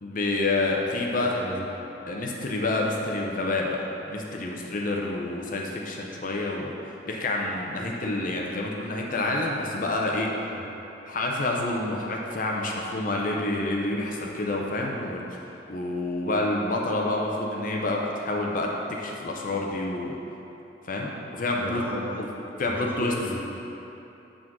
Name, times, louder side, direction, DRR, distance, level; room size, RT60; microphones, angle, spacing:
voice 1, 0.0-1.4 2.1-6.8 7.1-10.3 11.1-15.2 15.7-20.2 20.8-21.8 22.6-23.1, left 2 dB, 50° left, -1 dB, 0.7 m, -28 dB
voice 2, 1.2-1.8 7.8-7.9 10.5-10.7 21.6-22.2 22.6-23.4, right 1 dB, 10° right, -4 dB, 1.0 m, -36 dB
8.3 x 3.8 x 6.2 m, 3.0 s
head